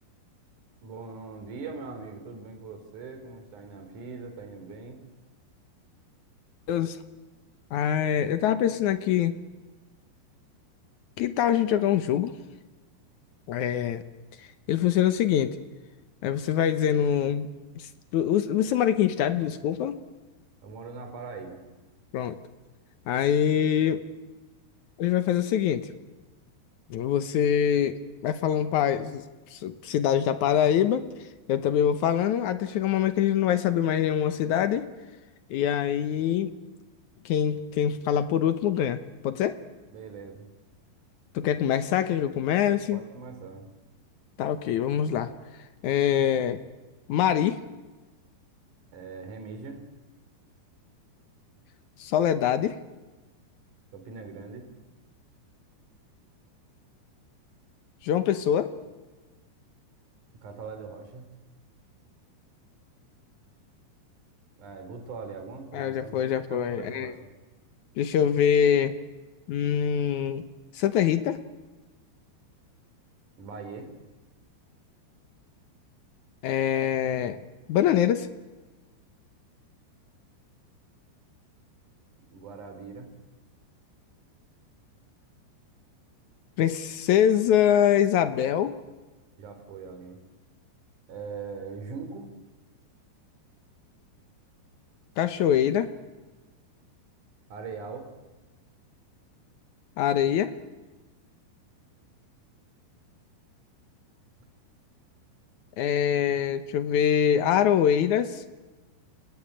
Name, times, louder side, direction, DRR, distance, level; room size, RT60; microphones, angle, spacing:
voice 1, 0.8-5.0 20.6-21.6 39.9-40.5 42.9-43.7 48.9-49.8 53.9-54.7 60.4-61.3 64.6-67.3 73.4-73.9 82.3-83.1 89.4-90.2 91.1-92.3 97.5-98.1, right 4 dB, 45° right, 7 dB, 4.7 m, -41 dB
voice 2, 7.7-9.4 11.2-12.3 13.5-14.0 14.4-15.6 16.2-17.5 17.7-20.0 22.1-22.4 23.1-24.1 25.0-25.9 26.9-29.2 29.5-31.1 31.5-34.9 35.5-36.5 37.2-39.0 39.2-39.6 41.3-43.0 44.4-45.3 45.8-46.6 47.1-47.6 52.0-52.8 58.0-58.7 65.7-67.1 68.0-69.0 69.5-70.4 70.7-71.4 76.4-77.4 77.7-78.3 86.6-88.7 95.2-95.9 100.0-100.5 105.8-108.4, left 9 dB, 85° left, 10 dB, 1.7 m, -24 dB
30.0 x 21.0 x 8.9 m, 1.2 s
omnidirectional pair, 5.0 m